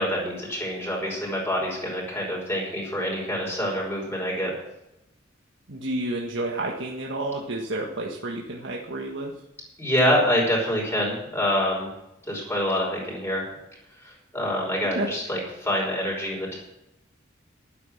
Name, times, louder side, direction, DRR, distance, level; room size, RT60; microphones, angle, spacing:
voice 1, 0.0-4.5 9.8-11.9 12.3-13.5 14.0-16.6, equal, 15° left, -4 dB, 5.7 m, -26 dB
voice 2, 5.7-9.3 15.0-15.1, right 2 dB, 65° right, -2 dB, 1.6 m, -30 dB
12.0 x 10.0 x 6.5 m, 0.86 s
head